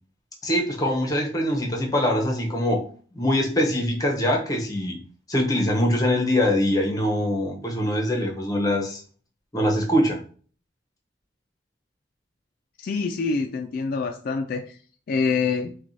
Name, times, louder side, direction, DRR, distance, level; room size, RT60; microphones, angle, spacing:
voice 1, 0.4-2.8 3.1-5.0 5.3-9.0 9.5-10.2, left 1 dB, 20° left, 1 dB, 0.8 m, -23 dB
voice 2, 12.8-14.8 15.1-15.7, left 4 dB, 55° left, 5 dB, 0.3 m, -26 dB
5.9 x 2.3 x 2.7 m, 0.42 s
head